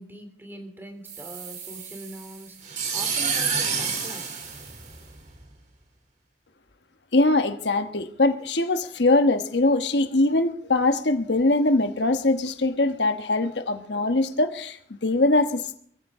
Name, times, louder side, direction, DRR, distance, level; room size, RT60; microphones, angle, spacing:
voice 1, 0.0-4.5, right 1 dB, 10° right, 3.1 m, -42 dB
sound 1, 1.1-5.4, right 6 dB, 45° right, 3.2 m, -29 dB
voice 2, 7.1-15.8, left 2 dB, 85° left, 1.2 m, -22 dB
21.5 x 14.5 x 3.7 m
head